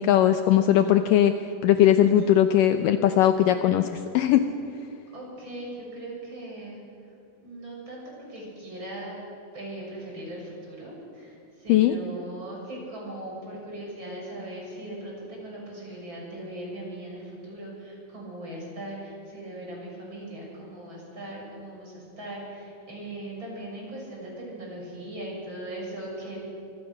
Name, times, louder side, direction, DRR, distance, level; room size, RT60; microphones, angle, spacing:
voice 1, 0.0-1.3 1.6-3.9 4.1-4.4 11.7-11.9, left 11 dB, 75° left, 8 dB, 2.2 m, -19 dB
voice 2, 1.8-2.4 5.1-6.8 7.4-8.0 8.3-9.2 9.5-26.4, right 1 dB, 30° right, -3 dB, 7.9 m, -39 dB
25.0 x 25.0 x 6.5 m, 2.7 s
omnidirectional pair, 4.3 m